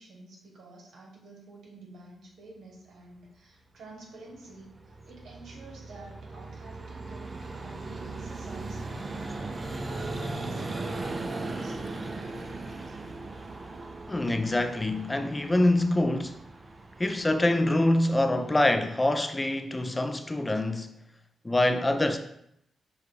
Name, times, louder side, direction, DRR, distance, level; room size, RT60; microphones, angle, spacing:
voice 1, 0.0-9.7 10.0-12.5, right 2 dB, 80° right, 1.2 m, -49 dB
Vehicle, 4.0-18.7, right 2 dB, 35° right, 0.5 m, -38 dB
sound 1, 9.2-13.2, right 1 dB, 55° right, 1.1 m, -52 dB
voice 2, 14.1-16.4 17.0-20.9 21.4-22.2, left 1 dB, 20° left, 0.3 m, -25 dB
6.5 x 2.3 x 3.2 m
cardioid pair, 75°, 0 cm